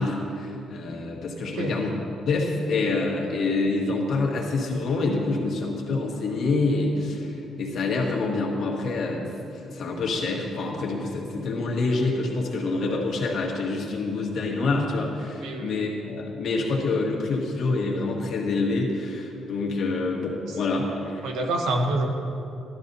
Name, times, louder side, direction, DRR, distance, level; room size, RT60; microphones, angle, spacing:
voice 1, 0.0-1.9 2.3-21.3, left 3 dB, 55° left, -2 dB, 1.6 m, -26 dB
voice 2, 1.4-1.8 15.4-15.8 21.2-22.1, right 2 dB, 90° right, 3 dB, 1.1 m, -26 dB
13.0 x 11.0 x 2.7 m, 2.7 s
cardioid pair, 135°, 0 cm